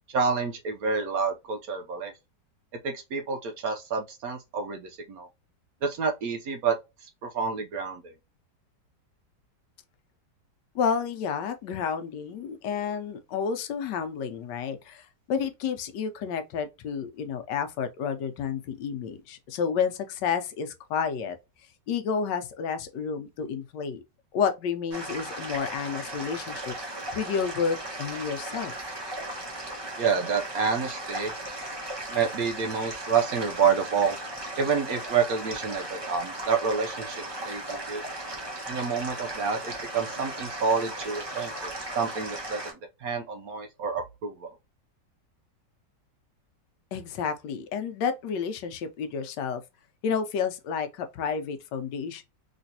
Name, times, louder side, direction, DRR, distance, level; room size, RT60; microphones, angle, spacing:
voice 1, 0.1-2.1 2.8-5.3 5.8-6.7 7.0-8.1 30.0-31.3 32.1-34.2 34.6-38.0 38.7-42.6 43.0-44.5, right 5 dB, 65° right, 1.0 m, -28 dB
voice 2, 10.7-21.4 21.9-24.0 24.3-28.7 46.9-49.6 50.0-52.2, left 6 dB, 80° left, 1.2 m, -30 dB
sound 1, 24.9-42.7, right 1 dB, 25° right, 0.6 m, -37 dB
3.2 x 3.0 x 2.7 m
omnidirectional pair, 1.9 m